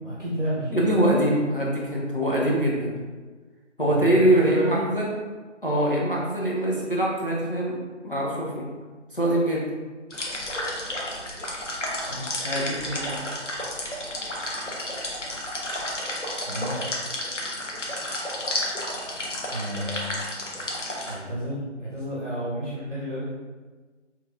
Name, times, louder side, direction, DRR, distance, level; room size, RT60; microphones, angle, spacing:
voice 1, 0.0-0.8 3.9-4.9 12.1-12.4 16.4-16.7 19.5-20.2 21.0-23.3, equal, 45° right, -8 dB, 0.9 m, -31 dB
voice 2, 0.7-3.0 3.8-5.1 5.6-8.7 9.1-9.7 12.4-13.2, right 1 dB, 45° left, -5 dB, 0.5 m, -23 dB
sound 1, 10.1-21.2, left 1 dB, 75° left, 0.9 m, -31 dB
3.5 x 3.0 x 2.4 m, 1.4 s
figure-of-eight pair, 170°, 37 cm